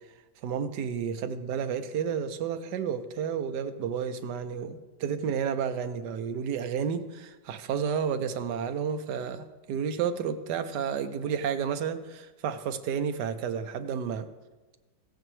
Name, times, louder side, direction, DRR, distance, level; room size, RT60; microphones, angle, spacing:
voice 1, 0.4-14.3, right 7 dB, 70° right, 9 dB, 1.2 m, -31 dB
15.5 x 9.0 x 3.2 m, 1.2 s
omnidirectional pair, 2.0 m